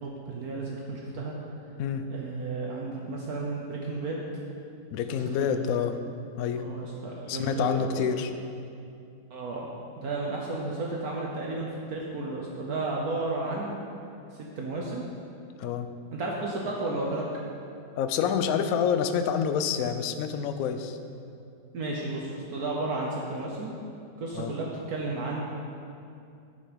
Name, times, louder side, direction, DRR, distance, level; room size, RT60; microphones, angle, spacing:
voice 1, 0.0-1.3 2.1-4.2 5.1-5.6 6.5-8.2 9.3-9.7 10.0-13.7 14.3-15.0 16.1-17.2 21.7-23.7 24.2-25.4, right 2 dB, 60° right, -3 dB, 1.3 m, -33 dB
voice 2, 4.9-6.0 6.4-6.6 7.3-8.3 15.6-15.9 18.0-21.0 24.3-24.5, left 7 dB, 70° left, 8 dB, 0.8 m, -27 dB
11.5 x 5.4 x 5.0 m, 2.6 s
omnidirectional pair, 1.9 m